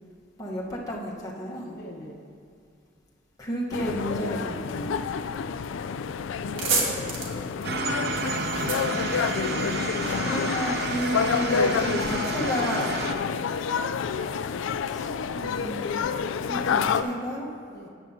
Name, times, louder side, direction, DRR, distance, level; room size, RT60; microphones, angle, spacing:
voice 1, 0.4-1.8 3.4-5.0 8.5-9.0 10.0-13.0 14.9-15.1 15.3-16.0 16.4-17.5, equal, 20° left, -5 dB, 1.1 m, -32 dB
voice 2, 1.5-2.3 6.4-7.6 9.3-9.7 17.7-17.9, equal, 50° left, 0 dB, 0.9 m, -42 dB
sound 1, 3.7-17.0, left 6 dB, 75° left, 0.3 m, -28 dB
sound 2, 5.8-6.0 6.3-9.9, right 3 dB, 85° right, 1.6 m, -30 dB
sound 3, 7.6-13.1, right 4 dB, 55° right, 0.6 m, -31 dB
13.5 x 9.1 x 2.7 m, 2.3 s
head